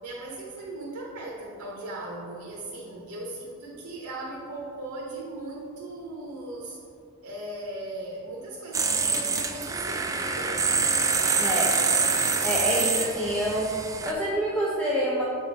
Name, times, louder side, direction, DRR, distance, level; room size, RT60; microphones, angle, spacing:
voice 1, 0.0-6.8 7.2-10.9, right 2 dB, 60° right, -3 dB, 0.9 m, -38 dB
sound 1, 8.7-14.1, right 4 dB, 15° right, 0.3 m, -25 dB
voice 2, 11.4-11.7 12.4-13.7 14.0-15.2, equal, 5° left, -7 dB, 0.7 m, -27 dB
6.9 x 3.7 x 5.2 m, 2.5 s
head